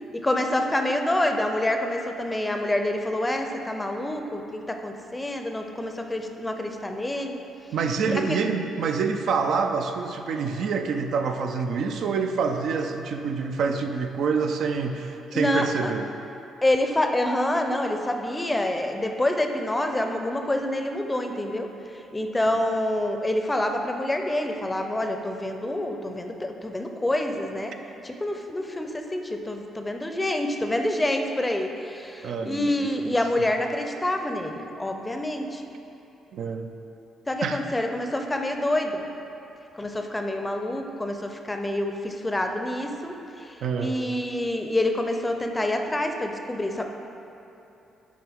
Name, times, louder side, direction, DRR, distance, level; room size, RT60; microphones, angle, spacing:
voice 1, 0.2-7.4 8.1-8.4 15.3-15.9 16.6-21.7 22.1-27.8 28.0-35.6 37.3-39.1 39.7-46.9, left 1 dB, 15° left, 4 dB, 0.5 m, -27 dB
voice 2, 7.7-16.1 32.2-33.5 36.3-36.7 37.4-37.6 43.6-44.0, right 5 dB, 70° right, 5 dB, 0.4 m, -27 dB
10.5 x 3.7 x 3.5 m, 2.9 s
cardioid pair, 90°, 0 cm